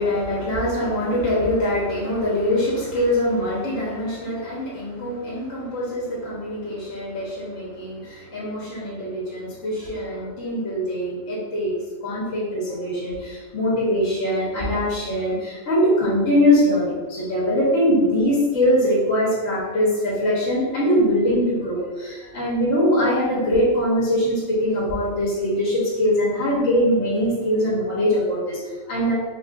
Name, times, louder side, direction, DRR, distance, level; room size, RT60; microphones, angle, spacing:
voice 1, 0.0-11.7 12.0-29.1, equal, 65° left, -7 dB, 1.3 m, -22 dB
4.1 x 2.4 x 2.4 m, 1.3 s
omnidirectional pair, 1.3 m